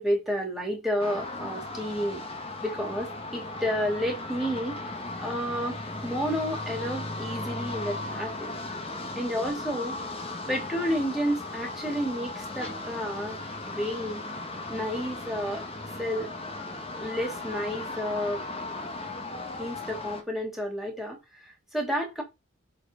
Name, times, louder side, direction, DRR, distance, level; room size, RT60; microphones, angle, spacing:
voice 1, 0.0-2.2 2.6-4.8 5.2-8.5 9.2-10.0 10.5-13.4 13.7-14.3 14.7-15.6 16.0-16.3 17.0-18.4 19.6-22.2, equal, ahead, 3.0 m, -31 dB
sound 1, 1.0-20.2, left 2 dB, 25° left, 1.4 m, -37 dB
7.9 x 4.3 x 3.9 m
head